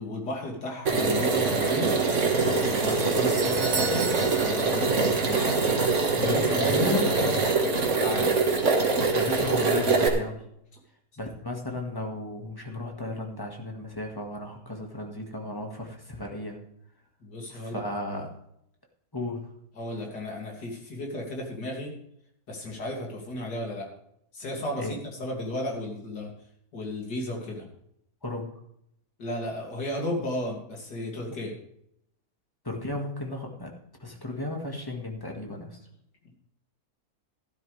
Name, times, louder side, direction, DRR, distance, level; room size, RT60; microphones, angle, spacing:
voice 1, 0.0-1.9 2.4-4.1 4.4-5.5 6.2-7.0 8.0-8.3 17.2-17.8 19.8-21.9 22.5-23.9 24.3-26.3 26.7-27.7 29.2-31.5, left 1 dB, 85° left, 0 dB, 3.2 m, -33 dB
sound 1, 0.9-10.1, right 4 dB, 50° right, 1.9 m, -24 dB
Doorbell, 2.9-5.4 5.7-5.8 6.5-6.6, right 5 dB, 80° right, 2.1 m, -35 dB
voice 2, 6.1-7.6 9.1-10.4 11.2-16.6 17.5-18.4 19.1-19.5 24.8-25.0 28.2-28.4 32.6-35.8, left 2 dB, 15° left, 1 dB, 1.7 m, -35 dB
13.5 x 12.0 x 3.4 m, 0.75 s
omnidirectional pair, 1.7 m